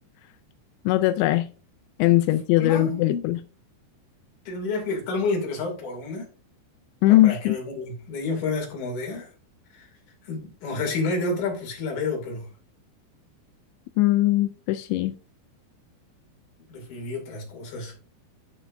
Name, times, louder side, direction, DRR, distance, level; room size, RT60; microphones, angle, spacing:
voice 1, 0.9-1.5 2.0-3.4 7.0-7.6 14.0-15.2, left 16 dB, 85° left, 2.5 m, -20 dB
voice 2, 2.6-3.2 4.5-6.3 7.2-9.3 9.7-9.9 10.2-12.5 16.7-17.9, left 3 dB, 45° left, 3.4 m, -29 dB
13.5 x 5.2 x 2.6 m
omnidirectional pair, 5.6 m